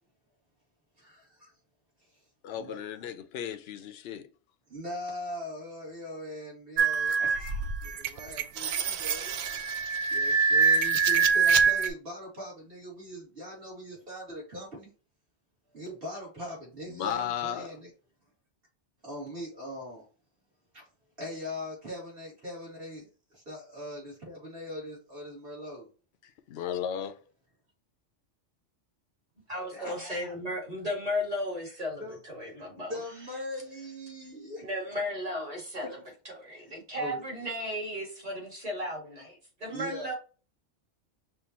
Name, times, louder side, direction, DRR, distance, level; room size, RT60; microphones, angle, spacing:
voice 1, 1.0-1.5 2.5-2.8 4.7-14.9 15.7-17.9 19.0-20.0 20.7-20.9 21.2-25.9 29.7-30.3 31.7-32.2 32.8-34.7 36.9-37.2 39.7-40.1, left 1 dB, 50° right, 2.5 m, -41 dB
voice 2, 2.4-4.3 16.9-17.8 26.5-27.1, left 9 dB, 65° left, 0.7 m, -34 dB
sound 1, 6.8-11.9, right 5 dB, 65° right, 0.7 m, -25 dB
voice 3, 29.5-33.0 34.6-36.0 36.2-40.1, left 1 dB, 30° right, 2.2 m, -35 dB
5.5 x 2.6 x 2.8 m
omnidirectional pair, 1.3 m